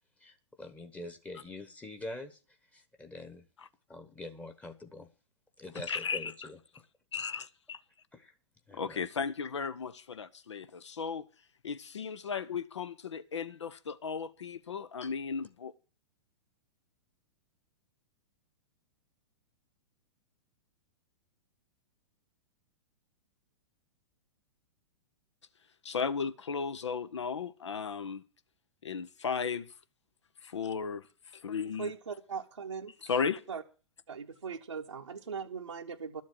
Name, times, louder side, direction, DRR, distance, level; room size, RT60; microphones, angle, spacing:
voice 1, 0.2-2.4 2.7-3.5 3.9-5.1 5.6-6.6 8.1-8.3 8.7-9.1, left 2 dB, 10° left, 1.1 m, -45 dB
voice 2, 5.9-6.3 7.1-7.5 8.7-11.3 11.6-15.7 25.8-28.2 28.8-29.7 30.4-31.0 31.3-31.9 33.1-33.4, left 6 dB, 70° left, 0.8 m, -35 dB
voice 3, 31.8-33.2 33.5-33.6 34.1-36.2, right 6 dB, 75° right, 1.0 m, -40 dB
12.5 x 7.5 x 7.4 m
figure-of-eight pair, 105°, 15 cm